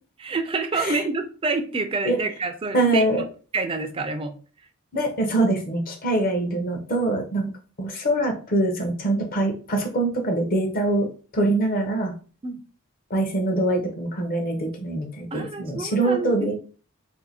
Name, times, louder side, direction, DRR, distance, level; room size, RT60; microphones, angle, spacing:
voice 1, 0.2-3.0 3.5-4.3 12.4-12.6 15.3-16.6, right 3 dB, 25° right, 7 dB, 0.3 m, -28 dB
voice 2, 2.7-3.2 4.9-7.5 7.8-12.1 13.1-16.6, right 2 dB, 40° left, 5 dB, 0.7 m, -24 dB
2.7 x 2.5 x 4.1 m, 0.38 s
head